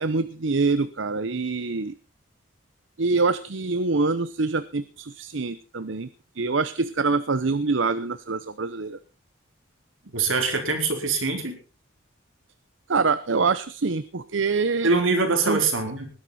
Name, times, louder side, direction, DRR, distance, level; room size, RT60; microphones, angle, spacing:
voice 1, 0.0-1.9 3.0-6.1 6.3-9.0 12.9-14.9 15.4-15.6, right 4 dB, 70° right, 14 dB, 0.8 m, -25 dB
voice 2, 10.1-11.6 14.8-16.1, right 3 dB, 85° right, 4 dB, 4.6 m, -23 dB
20.0 x 11.0 x 4.3 m, 0.36 s
head